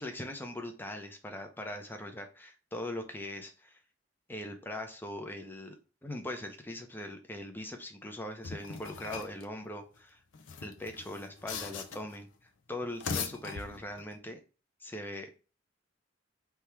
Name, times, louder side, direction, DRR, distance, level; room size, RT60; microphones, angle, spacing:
voice 1, 0.0-3.8 4.3-10.2 10.6-14.4 14.8-15.4, left 1 dB, 10° left, 5 dB, 0.6 m, -41 dB
sound 1, 8.4-9.4 10.3-12.2 12.8-14.1, left 5 dB, 80° left, 0.6 m, -40 dB
3.5 x 2.9 x 4.5 m, 0.34 s
head